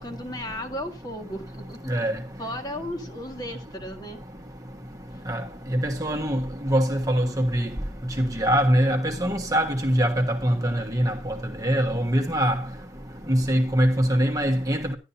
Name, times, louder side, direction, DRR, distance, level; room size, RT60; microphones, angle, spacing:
voice 1, 0.0-1.9 2.4-4.2, equal, 20° left, 1.7 m, -35 dB
voice 2, 1.9-2.2 5.3-5.4 5.7-7.7 8.2-11.3 11.6-12.6 13.3-15.0, equal, 20° right, 1.4 m, -23 dB
12.5 x 11.5 x 2.7 m
head